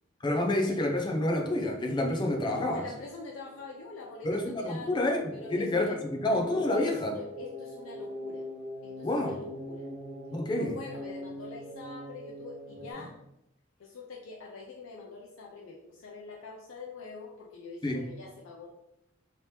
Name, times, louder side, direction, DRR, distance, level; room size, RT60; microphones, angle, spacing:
voice 1, 0.2-2.8 4.2-7.1 9.0-9.4 10.3-10.7 17.8-18.1, left 1 dB, 20° left, 2 dB, 0.5 m, -28 dB
voice 2, 2.4-5.9 6.7-8.4 8.8-9.9 10.6-13.2 13.8-18.7, left 4 dB, 85° left, -2 dB, 0.5 m, -44 dB
sound 1, 3.5-12.9, equal, 55° right, 1.2 m, -43 dB
3.0 x 2.9 x 3.2 m, 0.84 s
head